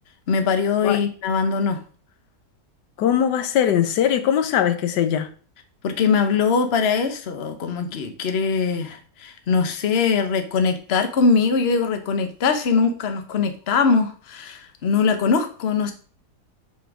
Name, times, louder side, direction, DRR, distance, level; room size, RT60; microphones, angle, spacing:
voice 1, 0.3-1.8 5.8-15.9, left 5 dB, 45° left, 1.0 m, -21 dB
voice 2, 3.0-5.3, left 9 dB, 85° left, 1.3 m, -20 dB
5.7 x 4.3 x 6.0 m
omnidirectional pair, 1.8 m